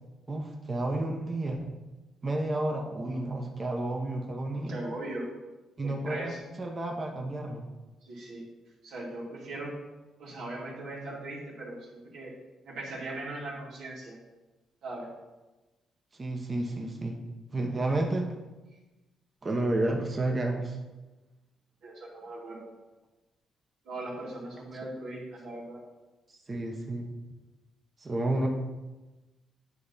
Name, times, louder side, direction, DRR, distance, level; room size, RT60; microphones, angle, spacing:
voice 1, 0.3-1.7 2.2-4.8 5.8-7.7 16.2-17.2 17.5-18.3 19.4-20.8 26.3-27.1 28.0-28.5, right 2 dB, 30° right, 1 dB, 1.0 m, -31 dB
voice 2, 4.7-5.3 5.8-6.4 8.0-8.4 8.8-9.7 10.2-12.3 12.7-14.2 14.8-15.1 21.8-22.7 23.8-25.8, right 2 dB, 80° right, -6 dB, 2.4 m, -39 dB
9.3 x 3.4 x 5.5 m, 1.1 s
cardioid pair, 90°, 0 cm